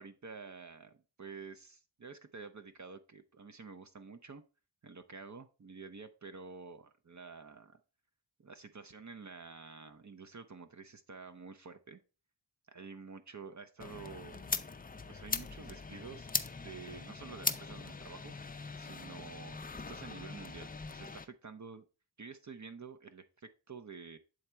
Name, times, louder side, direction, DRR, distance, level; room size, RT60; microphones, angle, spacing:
voice 1, 0.0-4.4 4.8-7.8 8.4-12.0 12.7-14.5 15.1-16.3 16.6-21.8 22.2-24.2, right 5 dB, 40° right, 9 dB, 0.6 m, -49 dB
sound 1, 13.8-21.3, left 4 dB, 20° left, 0.4 m, -40 dB
7.8 x 3.6 x 4.2 m, 0.32 s
wide cardioid pair, 100°, 45 cm